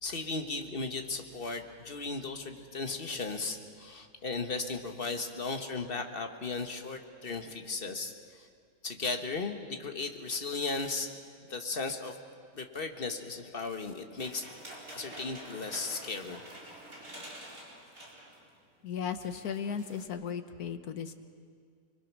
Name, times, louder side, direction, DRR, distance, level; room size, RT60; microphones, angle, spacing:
voice 1, 0.0-8.5 8.8-11.1 11.5-12.2 12.5-14.4 14.9-16.4, left 3 dB, 35° left, 5 dB, 1.6 m, -36 dB
sound 1, 14.2-18.5 18.8-18.9 19.1-20.1, right 1 dB, 55° right, 4.9 m, -48 dB
voice 2, 18.8-21.1, left 7 dB, 65° left, 9 dB, 1.5 m, -36 dB
29.5 x 21.5 x 6.2 m, 2.1 s
omnidirectional pair, 1.8 m